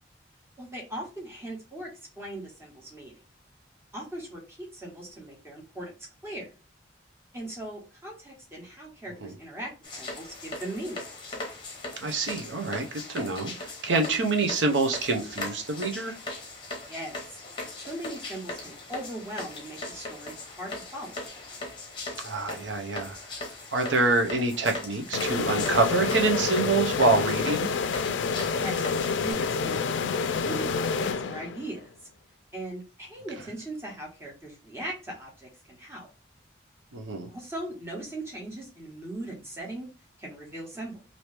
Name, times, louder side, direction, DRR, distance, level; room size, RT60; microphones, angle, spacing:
voice 1, 0.6-1.9 2.2-3.2 3.9-5.9 6.2-6.5 7.3-11.0 16.8-17.4 17.8-21.2 28.5-31.9 32.5-36.1 37.3-39.9 40.2-41.0, right 1 dB, 15° right, -2 dB, 1.1 m, -39 dB
sound 1, 9.8-29.3, left 2 dB, 25° left, 0.8 m, -39 dB
voice 2, 12.0-16.1 22.2-23.2 23.7-27.7 36.9-37.3, right 3 dB, 80° right, 3 dB, 0.7 m, -26 dB
sound 2, 25.1-31.8, left 5 dB, 85° left, 0.4 m, -28 dB
3.0 x 2.7 x 3.2 m, 0.33 s
head